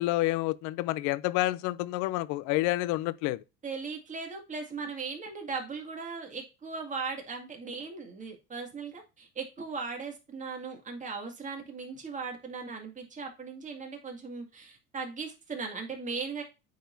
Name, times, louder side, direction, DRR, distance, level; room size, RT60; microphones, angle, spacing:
voice 1, 0.0-3.4, left 18 dB, 70° left, 0.5 m, -29 dB
voice 2, 3.6-16.4, right 4 dB, 25° right, 2.2 m, -38 dB
9.2 x 4.2 x 2.7 m
cardioid pair, 120°, 30 cm